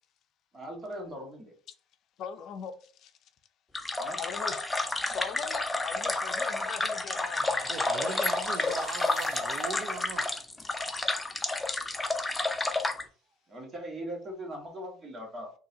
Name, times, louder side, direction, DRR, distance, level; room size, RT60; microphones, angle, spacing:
voice 1, 0.5-1.5 4.0-4.2 13.5-15.5, equal, 35° right, 1.7 m, -40 dB
voice 2, 2.2-3.1 4.2-4.7 5.1-7.8, left 7 dB, 60° left, 0.5 m, -40 dB
sound 1, 3.7-13.0, left 2 dB, 15° left, 0.6 m, -30 dB
sound 2, 6.4-10.1, right 4 dB, 75° right, 1.2 m, -50 dB
voice 3, 7.7-10.3, right 5 dB, 60° right, 0.6 m, -39 dB
3.8 x 2.7 x 2.8 m
supercardioid pair, 85°, 0 cm